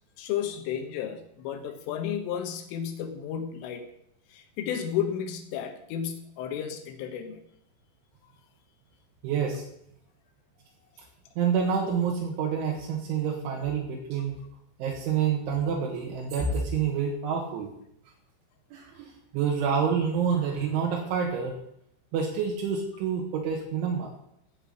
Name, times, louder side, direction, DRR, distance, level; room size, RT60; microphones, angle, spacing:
voice 1, 0.2-3.8 4.3-7.4, left 9 dB, 90° left, 6 dB, 3.9 m, -32 dB
voice 2, 9.2-9.6 11.4-14.4 14.8-17.7 18.7-21.6 22.1-24.1, right 6 dB, 80° right, -1 dB, 3.8 m, -28 dB
13.5 x 5.6 x 8.0 m, 0.74 s
omnidirectional pair, 5.6 m